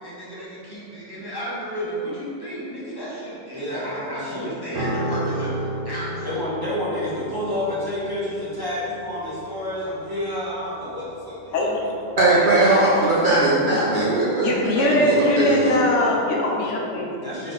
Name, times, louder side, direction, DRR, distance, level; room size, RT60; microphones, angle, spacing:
voice 1, 0.0-6.4, equal, 20° left, -9 dB, 0.9 m, -33 dB
voice 2, 3.5-4.5 6.2-13.1 17.2-17.5, left 1 dB, 20° right, -10 dB, 0.8 m, -30 dB
Piano, 4.7-14.1 14.4-14.7, right 1 dB, 75° right, 1.0 m, -34 dB
voice 3, 12.2-15.8, right 2 dB, 50° right, -7 dB, 0.7 m, -19 dB
voice 4, 14.4-17.2, left 1 dB, 75° left, -2 dB, 1.0 m, -21 dB
4.1 x 3.3 x 4.0 m, 2.6 s
omnidirectional pair, 1.3 m